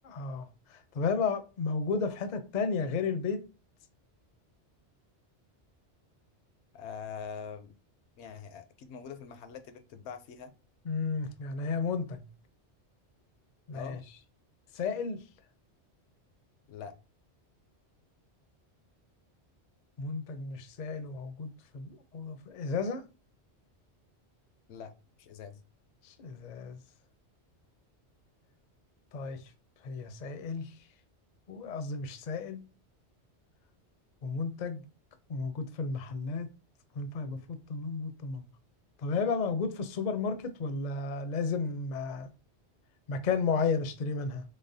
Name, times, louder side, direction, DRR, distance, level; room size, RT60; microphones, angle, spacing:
voice 1, 0.1-3.4 10.9-12.3 13.7-14.0 14.7-15.2 20.0-21.5 21.7-23.0 26.0-26.8 29.1-29.4 29.8-30.7 31.5-32.6 34.2-34.8 35.3-36.5 37.0-38.4 39.0-42.3 43.1-44.4, left 4 dB, 50° left, 0.5 m, -33 dB
voice 2, 6.7-7.7 8.2-10.5 13.7-14.0 16.7-17.0 24.7-24.9 25.2-25.6, left 6 dB, 75° left, 0.8 m, -43 dB
3.9 x 3.3 x 2.6 m
omnidirectional pair, 1.2 m